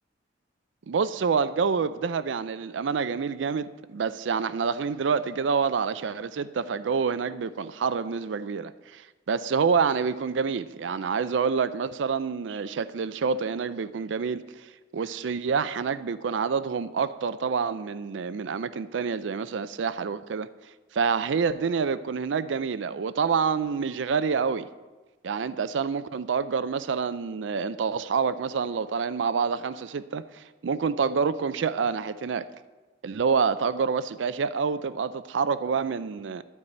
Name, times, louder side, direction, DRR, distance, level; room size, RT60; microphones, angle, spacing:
voice 1, 0.9-14.7 14.9-20.5 20.9-24.7 25.2-32.5 33.0-36.4, right 5 dB, 90° right, 0.4 m, -27 dB
12.5 x 4.7 x 8.6 m
head